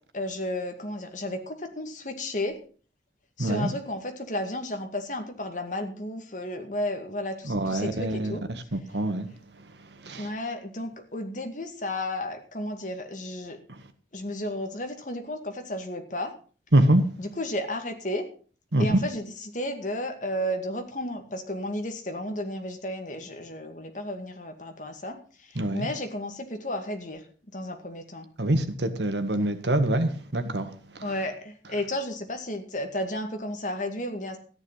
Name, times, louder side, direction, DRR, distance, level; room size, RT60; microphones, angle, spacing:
voice 1, 0.1-2.6 3.4-8.4 10.1-13.6 14.1-16.3 17.2-18.3 18.8-27.2 27.5-28.3 31.0-34.4, left 1 dB, 45° left, 2.2 m, -33 dB
voice 2, 3.4-3.7 7.5-8.4 8.7-9.3 10.0-10.3 16.7-17.0 18.7-18.9 25.5-25.9 28.4-30.7, right 1 dB, 80° right, 1.7 m, -24 dB
13.5 x 10.0 x 5.7 m
head